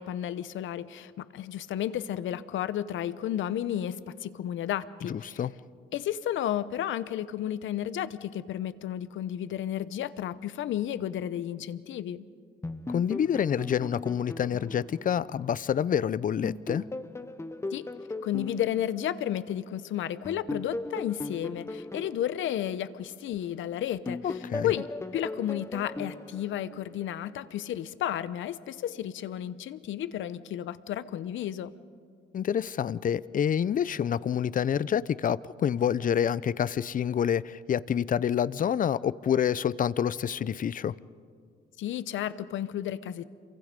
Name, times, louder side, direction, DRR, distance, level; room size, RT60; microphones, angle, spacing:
voice 1, 0.0-5.4 5.9-12.3 17.7-17.9 18.2-31.7 41.8-43.2, left 11 dB, 75° left, 0.8 m, -32 dB
voice 2, 5.1-5.5 12.9-16.8 24.2-24.7 32.3-40.9, left 8 dB, 45° left, 0.6 m, -27 dB
sound 1, 12.6-16.0 16.4-19.7 20.3-23.6 24.1-27.3, left 2 dB, 15° left, 0.8 m, -38 dB
28.0 x 23.5 x 5.3 m
cardioid pair, 90°, 20 cm